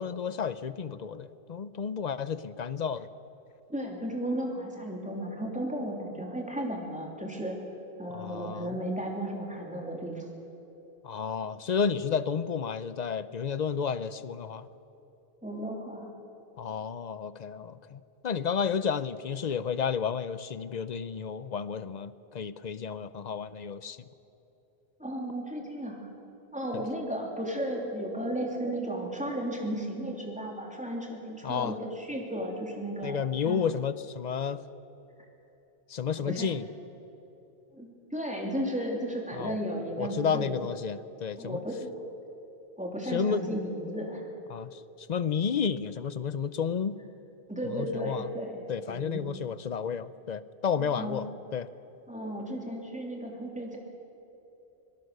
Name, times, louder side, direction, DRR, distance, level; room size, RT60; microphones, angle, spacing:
voice 1, 0.0-3.1 8.1-8.7 11.0-14.7 16.6-24.0 31.4-31.8 33.0-34.6 35.9-36.7 39.3-39.6 40.0-41.6 43.0-43.6 44.5-47.0 47.6-48.3 48.7-51.7, left 6 dB, 50° left, 15 dB, 0.7 m, -31 dB
voice 2, 3.7-7.6 8.0-10.3 15.4-16.1 25.0-26.1 26.5-33.6 36.2-36.5 37.7-40.6 41.4-41.9 42.8-44.3 47.5-48.6 48.9-49.2 50.8-51.2 52.1-53.8, right 1 dB, 5° right, 0 dB, 3.0 m, -34 dB
24.5 x 17.5 x 6.6 m, 3.0 s
omnidirectional pair, 1.0 m